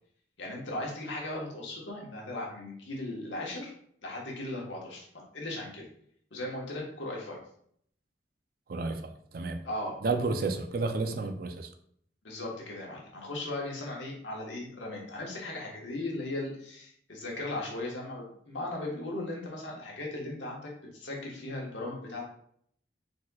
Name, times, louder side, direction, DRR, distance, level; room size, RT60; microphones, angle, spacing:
voice 1, 0.4-3.7 4.0-5.1 5.3-5.8 6.3-7.4 9.6-10.0 12.2-22.2, left 2 dB, 85° left, -2 dB, 1.3 m, -37 dB
voice 2, 8.7-9.7 10.0-11.7, right 3 dB, 50° right, 7 dB, 0.4 m, -31 dB
4.2 x 4.2 x 2.3 m, 0.66 s
head